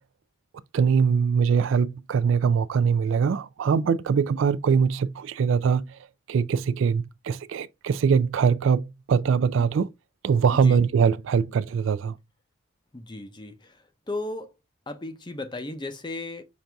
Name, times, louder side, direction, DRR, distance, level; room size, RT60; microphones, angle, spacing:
voice 1, 0.7-6.0 6.3-9.9 10.2-12.2, right 6 dB, 70° right, 0.3 m, -22 dB
voice 2, 12.9-13.8 14.1-14.5 14.9-16.4, left 2 dB, 20° left, 0.6 m, -35 dB
6.0 x 2.6 x 3.3 m
head